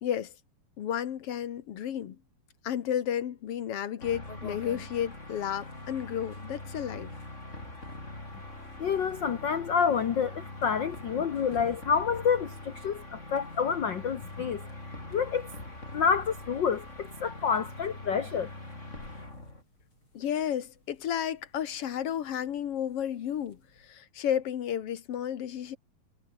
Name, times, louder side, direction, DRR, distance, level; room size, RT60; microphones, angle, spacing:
voice 1, 0.0-0.3 0.8-2.2 2.6-7.1 20.1-25.8, left 9 dB, 55° left, 1.9 m, -32 dB
sound 1, 4.0-19.6, left 2 dB, 20° left, 6.6 m, -43 dB
sound 2, 4.3-23.9, left 3 dB, 40° left, 7.4 m, -58 dB
voice 2, 8.8-14.6 15.1-15.5 15.9-18.5, left 6 dB, 80° left, 1.0 m, -28 dB
omnidirectional pair, 3.7 m